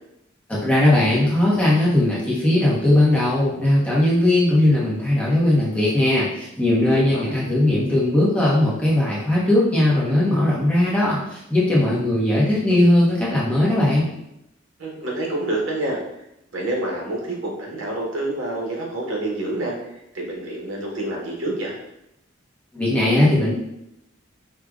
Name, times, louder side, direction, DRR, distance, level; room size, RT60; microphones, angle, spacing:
voice 1, 0.5-14.1 22.7-23.5, left 1 dB, 5° left, -6 dB, 0.7 m, -19 dB
voice 2, 6.9-7.4 14.8-16.0 16.5-19.7 20.1-21.8, right 1 dB, 85° right, -2 dB, 0.9 m, -27 dB
4.9 x 2.1 x 2.4 m, 0.84 s
head